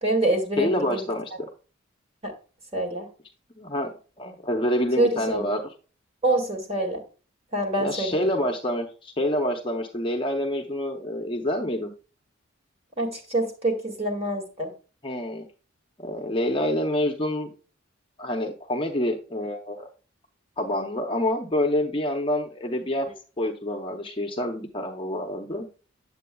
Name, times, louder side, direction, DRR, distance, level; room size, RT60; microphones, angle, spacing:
voice 1, 0.0-1.1 2.2-2.3 2.7-3.1 5.0-5.5 6.2-7.0 7.5-8.2 13.0-14.7, right 1 dB, 30° right, 1 dB, 1.9 m, -26 dB
voice 2, 0.6-1.5 3.6-3.9 4.2-5.6 7.8-11.9 15.0-15.4 16.0-17.5 18.2-19.9 20.6-23.1 23.4-25.7, left 1 dB, 25° left, 2 dB, 0.6 m, -27 dB
8.0 x 7.7 x 2.3 m, 0.36 s
head